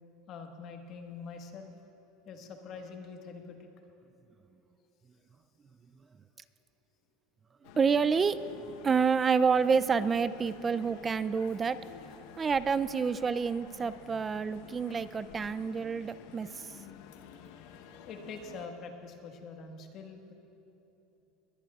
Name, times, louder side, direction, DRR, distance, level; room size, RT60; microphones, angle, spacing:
voice 1, 0.3-1.7 2.2-3.7 18.1-20.3, left 4 dB, 45° left, 4 dB, 1.4 m, -44 dB
sound 1, 7.6-18.7, left 8 dB, 70° left, 0.9 m, -51 dB
voice 2, 7.7-8.4 8.8-11.8 12.4-16.5, right 5 dB, 20° right, 14 dB, 0.4 m, -28 dB
21.5 x 19.5 x 2.4 m, 3.0 s
supercardioid pair, 130°, 0 cm